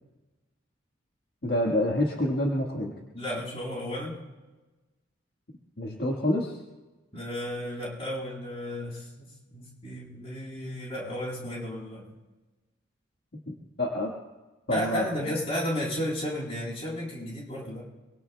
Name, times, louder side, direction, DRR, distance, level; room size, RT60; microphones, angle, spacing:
voice 1, 1.4-2.9 5.8-6.6 13.3-14.1 14.7-15.4, left 1 dB, 55° left, -1 dB, 1.6 m, -28 dB
voice 2, 3.1-4.2 7.1-12.0 14.7-17.9, left 1 dB, 30° left, -5 dB, 7.0 m, -33 dB
24.0 x 24.0 x 2.3 m, 1.2 s
head